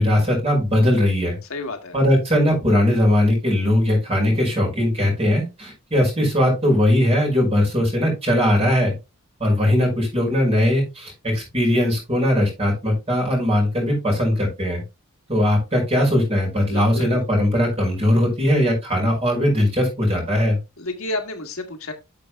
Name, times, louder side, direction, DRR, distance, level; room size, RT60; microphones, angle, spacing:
voice 1, 0.0-1.4 1.9-8.9 9.4-14.8 15.3-20.6, left 1 dB, 30° right, 0 dB, 5.5 m, -19 dB
voice 2, 1.5-1.9 16.7-17.2 20.8-21.9, left 2 dB, 70° left, 5 dB, 1.6 m, -30 dB
12.0 x 6.8 x 2.4 m, 0.25 s
head